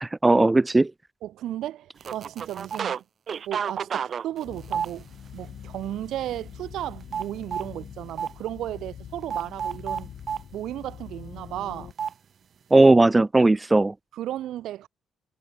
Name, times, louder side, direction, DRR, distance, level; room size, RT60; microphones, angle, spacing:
voice 1, 0.0-0.9 12.7-13.9, right 2 dB, 15° right, 0.4 m, -17 dB
voice 2, 1.2-3.0 3.5-5.1 5.3-10.1 10.5-11.9 14.1-14.9, right 13 dB, 80° right, 6.5 m, -34 dB
sound 1, 2.0-3.0 3.3-5.4 5.8-6.1 6.3-7.7 8.2-8.3 9.3-10.4 12.0-12.1, right 7 dB, 50° right, 2.3 m, -30 dB
sound 2, 4.4-11.9, left 9 dB, 65° left, 5.1 m, -44 dB
cardioid pair, 90°, 0 cm